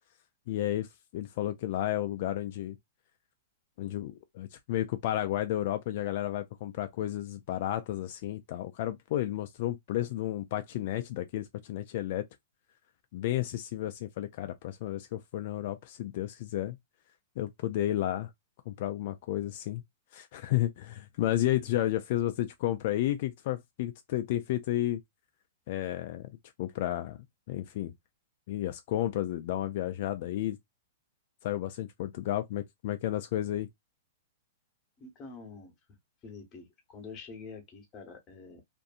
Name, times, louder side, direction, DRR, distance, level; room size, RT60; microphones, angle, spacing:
voice 1, 0.5-2.8 3.8-12.2 13.1-16.8 17.4-18.3 18.7-19.8 20.1-25.0 25.7-26.3 26.6-27.2 27.5-27.9 28.5-30.6 31.4-33.7, left 13 dB, 50° left, 0.3 m, -32 dB
voice 2, 35.0-35.7 36.2-38.6, left 4 dB, 20° left, 1.0 m, -46 dB
2.6 x 2.6 x 2.4 m
hypercardioid pair, 155°, 0 cm